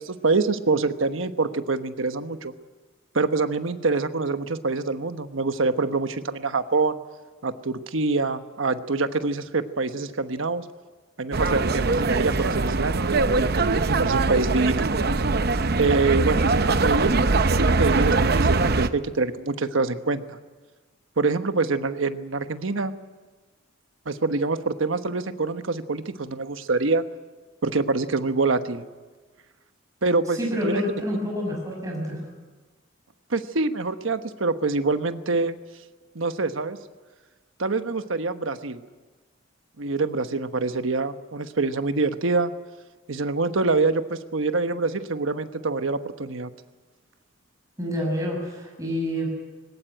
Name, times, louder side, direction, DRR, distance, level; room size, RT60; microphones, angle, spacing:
voice 1, 0.0-2.5 3.1-7.0 7.4-10.6 11.2-14.9 15.8-20.4 21.2-22.9 24.1-27.1 27.6-28.8 30.0-30.4 30.6-30.8 33.3-35.6 36.1-36.8 37.6-38.8 39.8-42.5 43.1-46.5, right 3 dB, 80° right, 9 dB, 1.1 m, -25 dB
sound 1, 11.3-18.9, right 3 dB, 50° right, 0.7 m, -22 dB
voice 2, 30.3-32.2 47.8-49.5, equal, 15° right, -1 dB, 6.1 m, -28 dB
20.5 x 18.0 x 9.2 m, 1.3 s
head